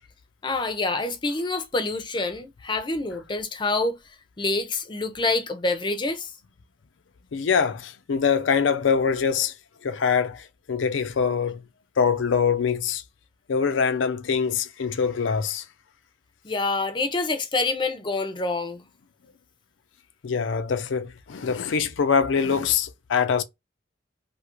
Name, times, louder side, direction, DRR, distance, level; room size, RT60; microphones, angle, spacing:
voice 1, 0.4-4.0 4.4-6.3 16.4-18.8, left 3 dB, 25° left, 0.5 m, -26 dB
voice 2, 7.3-9.5 9.8-11.6 12.0-13.0 13.5-15.6 20.2-23.4, left 6 dB, 85° left, 0.4 m, -24 dB
2.8 x 2.4 x 2.9 m
head